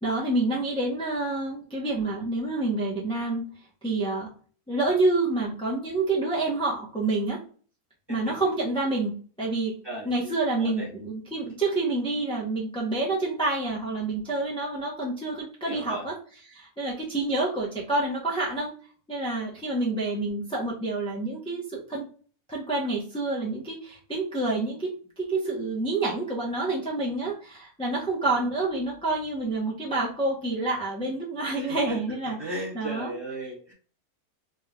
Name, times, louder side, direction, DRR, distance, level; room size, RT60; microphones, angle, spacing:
voice 1, 0.0-3.5 3.8-4.3 4.7-7.4 8.1-9.7 10.0-16.2 16.5-18.7 19.1-22.1 22.5-33.1, right 2 dB, 5° left, -5 dB, 0.6 m, -28 dB
voice 2, 9.8-10.9 15.7-16.1 28.2-28.5 31.6-33.7, right 2 dB, 20° right, -3 dB, 1.0 m, -37 dB
3.5 x 3.1 x 2.3 m, 0.42 s
omnidirectional pair, 1.6 m